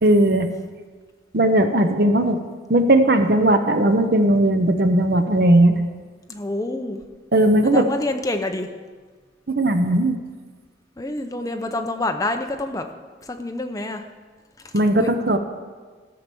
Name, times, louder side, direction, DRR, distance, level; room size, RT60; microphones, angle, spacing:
voice 1, 0.0-0.5 1.3-2.4 2.7-5.8 7.3-7.9 9.6-10.2 14.7-15.4, right 1 dB, 55° right, 8 dB, 0.8 m, -17 dB
voice 2, 6.3-7.0 7.6-8.7 11.0-12.9 13.3-14.0 14.6-15.1, left 2 dB, 20° left, 5 dB, 0.7 m, -27 dB
13.0 x 5.9 x 6.9 m, 1.4 s
head